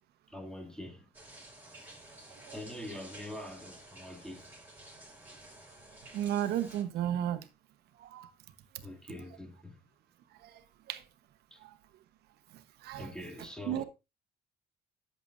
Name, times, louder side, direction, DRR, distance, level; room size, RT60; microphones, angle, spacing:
voice 1, 0.3-1.1 2.5-4.5 8.8-9.8 11.5-11.6 13.0-13.8, left 1 dB, 5° left, 1.8 m, -44 dB
sound 1, 1.1-6.8, right 1 dB, 10° right, 4.5 m, -52 dB
voice 2, 6.1-7.5 8.0-8.3 8.7-8.9 10.4-10.6 10.9-11.0 11.6-11.7 12.8-13.1 13.7-13.8, right 11 dB, 75° right, 1.0 m, -34 dB
11.0 x 7.6 x 2.5 m
cardioid pair, 110°, 17 cm